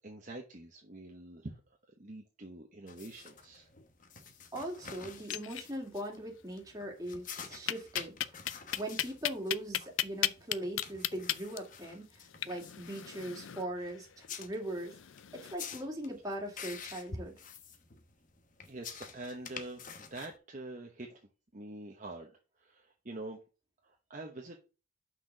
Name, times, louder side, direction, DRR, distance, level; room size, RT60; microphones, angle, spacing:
voice 1, 0.0-1.6 2.0-3.7 18.6-21.2 21.5-22.3 22.6-23.4 23.8-24.6, right 2 dB, 40° right, 1 dB, 1.0 m, -45 dB
sound 1, 2.9-20.4, left 6 dB, 40° left, 1.0 m, -48 dB
voice 2, 4.5-8.1 8.7-14.9 15.3-17.3, right 1 dB, 20° right, 0 dB, 2.2 m, -40 dB
sound 2, 5.1-6.1 6.3-6.4 6.7-6.8 7.7-15.6, left 12 dB, 75° left, 0.5 m, -36 dB
6.0 x 4.6 x 6.5 m, 0.33 s
head